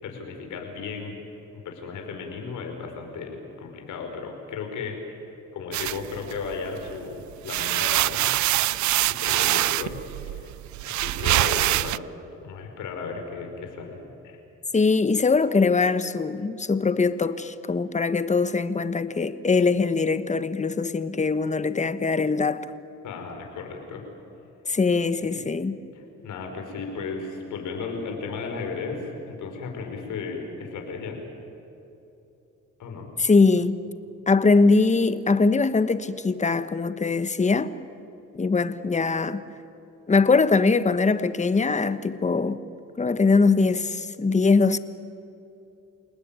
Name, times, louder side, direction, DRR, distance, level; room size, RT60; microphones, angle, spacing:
voice 1, 0.0-1.1 1.5-8.4 8.8-10.5 10.9-12.1 12.4-14.0 14.2-14.4 23.0-24.1 25.2-25.4 25.9-31.2 32.8-33.1, left 4 dB, 80° left, 5.3 m, -35 dB
sound 1, 5.7-6.9 7.3-12.0, right 17 dB, 75° right, 0.5 m, -24 dB
voice 2, 14.7-22.6 24.6-25.8 33.2-33.8 34.3-37.7 38.3-39.4 40.1-42.6 43.0-44.8, left 4 dB, 25° left, 1.2 m, -22 dB
28.5 x 19.0 x 9.1 m
cardioid pair, 90°, 30 cm